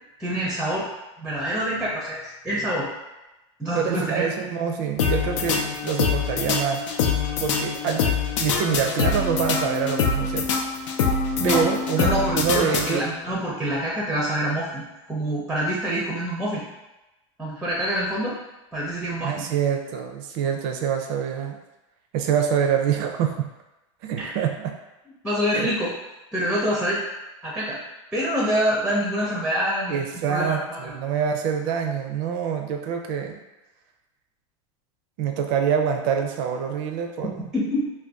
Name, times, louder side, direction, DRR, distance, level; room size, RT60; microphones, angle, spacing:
voice 1, 0.2-0.8 1.2-2.9 3.6-4.3 11.4-11.6 12.0-16.6 17.4-18.4 18.7-19.5 24.2-24.3 25.2-25.9 26.3-27.0 27.4-27.8 28.1-30.0 30.3-30.9 37.2-37.9, equal, 5° right, -5 dB, 0.5 m, -26 dB
voice 2, 3.7-6.8 7.4-8.1 8.4-10.5 11.4-13.1 19.2-21.6 22.1-23.5 24.0-24.7 25.5-25.7 29.9-33.4 35.2-37.5, right 7 dB, 55° right, 4 dB, 0.5 m, -25 dB
sound 1, 5.0-13.3, left 5 dB, 80° left, 0.5 m, -24 dB
2.5 x 2.2 x 3.4 m, 1.0 s
supercardioid pair, 140°, 16 cm